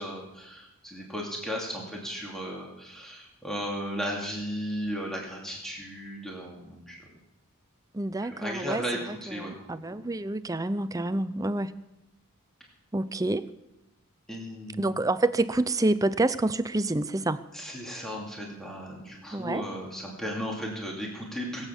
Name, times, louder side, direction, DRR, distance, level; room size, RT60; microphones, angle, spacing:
voice 1, 0.0-7.1 8.2-10.0 14.3-14.9 17.5-21.6, equal, ahead, -2 dB, 2.7 m, -35 dB
voice 2, 7.9-8.8 9.4-11.7 12.9-13.5 14.8-17.4 19.3-19.6, right 2 dB, 15° right, 13 dB, 0.5 m, -27 dB
22.5 x 8.2 x 7.0 m, 0.92 s
head